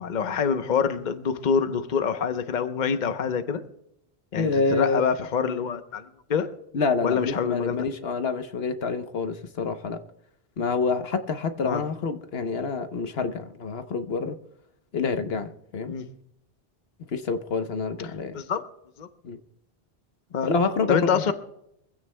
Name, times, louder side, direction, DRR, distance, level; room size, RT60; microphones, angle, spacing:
voice 1, 0.0-3.6 4.3-6.5 7.0-7.9 11.6-11.8 15.9-16.1 18.3-18.6 19.0-19.1 20.3-20.5 20.9-21.3, left 6 dB, 50° left, 9 dB, 0.9 m, -26 dB
voice 2, 4.4-5.1 6.7-10.0 10.6-14.4 14.9-15.9 17.1-18.4 19.2-19.4 20.4-21.3, left 4 dB, 75° left, 8 dB, 1.2 m, -27 dB
24.0 x 15.5 x 2.2 m, 0.78 s
omnidirectional pair, 1.0 m